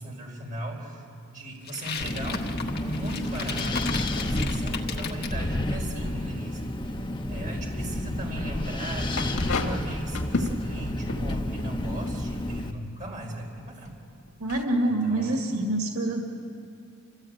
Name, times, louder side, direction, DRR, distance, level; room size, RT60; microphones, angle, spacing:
voice 1, 0.0-7.0 7.3-13.9 15.0-15.4, right 1 dB, 40° right, -1 dB, 4.1 m, -38 dB
sound 1, 1.6-5.4, left 6 dB, 50° left, 1.4 m, -36 dB
Wind, 2.0-12.7, left 1 dB, 20° left, 0.9 m, -30 dB
sound 2, 9.1-12.9 13.9-14.0 14.3-14.6, left 3 dB, 85° left, 1.8 m, -32 dB
voice 2, 14.4-16.2, right 1 dB, 90° right, 2 dB, 2.1 m, -26 dB
27.5 x 15.5 x 8.8 m, 2.4 s
head